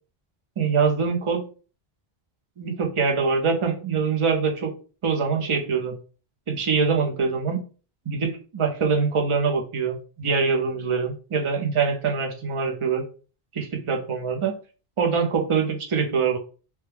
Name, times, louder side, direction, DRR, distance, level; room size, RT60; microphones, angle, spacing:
voice 1, 0.6-1.4 2.6-4.7 5.0-6.0 6.5-7.6 8.1-13.1 13.5-14.6 15.0-16.4, right 5 dB, 35° right, 2 dB, 0.6 m, -24 dB
3.0 x 2.2 x 3.3 m, 0.37 s
omnidirectional pair, 1.0 m